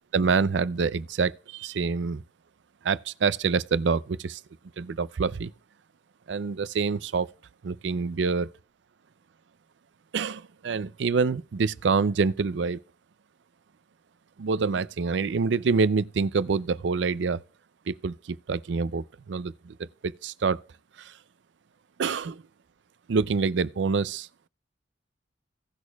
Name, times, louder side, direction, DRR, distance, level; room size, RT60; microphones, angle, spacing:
voice 1, 0.1-2.2 2.8-4.4 4.8-5.5 6.3-7.3 7.7-8.5 10.1-12.8 14.4-17.4 17.9-20.6 21.0-21.1 22.0-22.4 23.1-24.3, right 4 dB, 70° right, 0.4 m, -26 dB
17.5 x 6.3 x 2.3 m
head